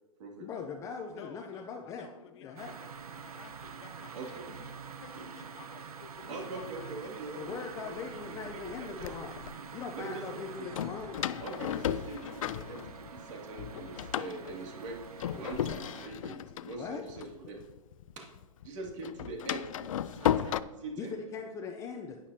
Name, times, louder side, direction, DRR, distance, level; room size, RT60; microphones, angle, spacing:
voice 1, 0.4-2.1 2.4-2.7 7.4-9.3 9.7-11.2 16.7-17.0 21.0-22.2, left 6 dB, 15° left, 3 dB, 0.5 m, -40 dB
voice 2, 1.1-4.7 5.0-7.7, left 8 dB, 45° left, 7 dB, 1.1 m, -53 dB
sound 1, 2.6-16.1, right 5 dB, 80° right, 0.9 m, -46 dB
voice 3, 6.3-9.6 9.9-10.8 11.4-15.0 15.3-17.6 18.2-18.3 18.6-21.1, right 3 dB, 55° right, -1 dB, 2.5 m, -43 dB
Door, 7.6-7.7 8.4-9.5 10.7-13.3 13.6-18.1 18.4-20.6, left 11 dB, 65° left, 0.4 m, -35 dB
11.0 x 9.8 x 2.8 m, 1.1 s
hypercardioid pair, 140°, 19 cm